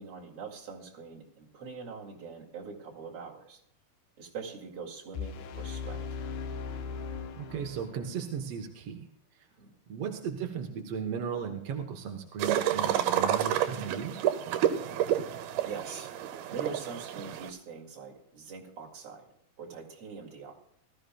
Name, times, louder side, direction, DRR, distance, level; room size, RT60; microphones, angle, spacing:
voice 1, 0.0-3.6 4.2-6.0 9.6-9.7 14.9-15.2 15.6-16.2 16.5-19.3 19.6-20.5, right 5 dB, 45° right, -2 dB, 2.9 m, -43 dB
sound 1, 5.1-8.2, left 6 dB, 90° left, 2.9 m, -38 dB
voice 2, 7.4-9.1 9.3-9.5 9.9-14.2, right 7 dB, 65° right, 3 dB, 1.6 m, -36 dB
sound 2, 12.4-17.5, right 11 dB, 90° right, 2.8 m, -29 dB
19.5 x 14.0 x 2.3 m, 0.73 s
omnidirectional pair, 4.3 m